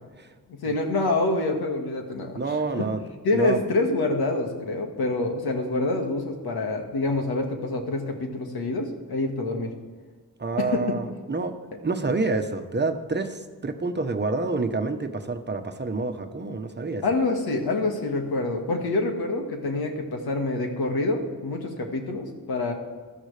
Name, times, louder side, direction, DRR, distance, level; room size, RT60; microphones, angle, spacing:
voice 1, 0.6-2.9 3.2-9.7 10.6-10.9 17.0-22.7, left 2 dB, 85° left, 3 dB, 1.9 m, -26 dB
voice 2, 2.3-3.0 3.3-3.6 10.4-17.0, right 3 dB, 30° right, 7 dB, 1.1 m, -28 dB
16.5 x 12.0 x 3.4 m, 1.5 s
cardioid pair, 75°, 36 cm